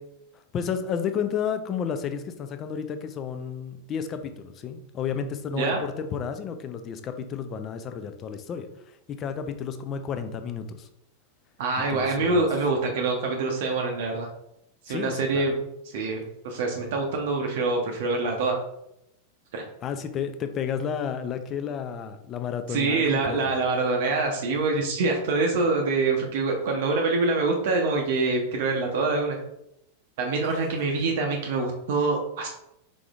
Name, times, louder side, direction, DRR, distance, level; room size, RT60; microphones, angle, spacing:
voice 1, 0.5-10.9 11.9-12.5 14.9-15.5 19.8-23.5, left 7 dB, 30° left, 9 dB, 0.4 m, -32 dB
voice 2, 11.6-14.3 14.9-18.6 19.5-19.6 22.7-29.4 30.2-32.5, right 3 dB, 55° right, 1 dB, 0.6 m, -25 dB
4.8 x 3.8 x 2.3 m, 0.82 s
figure-of-eight pair, 90°, 0 cm